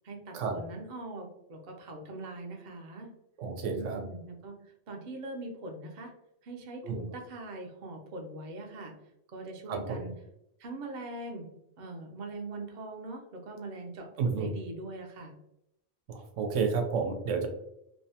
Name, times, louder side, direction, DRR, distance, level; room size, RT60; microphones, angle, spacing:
voice 1, 0.0-3.1 3.7-6.1 6.4-8.9 9.3-10.1 10.6-11.5 11.8-15.3, right 2 dB, 55° right, 2 dB, 0.6 m, -42 dB
voice 2, 3.4-4.0 6.8-7.0 9.7-10.0 14.2-14.5 16.1-17.5, right 5 dB, 80° right, 4 dB, 0.9 m, -30 dB
2.7 x 2.1 x 2.7 m, 0.81 s
omnidirectional pair, 1.3 m